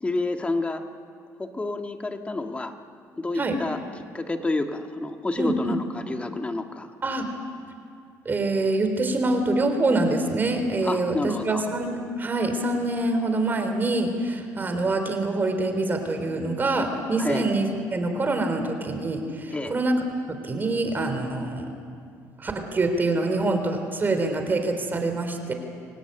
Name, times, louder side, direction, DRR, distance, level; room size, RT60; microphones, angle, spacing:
voice 1, 0.0-0.8 1.4-2.7 3.2-6.9 10.8-11.6 17.2-17.4 19.5-19.7, left 2 dB, 20° left, 5 dB, 1.7 m, -29 dB
voice 2, 5.4-5.8 7.0-7.3 8.3-20.0 20.3-21.7 22.4-25.5, right 2 dB, 30° right, 6 dB, 3.8 m, -25 dB
26.5 x 17.5 x 9.0 m, 2.4 s
cardioid pair, 100°, 7 cm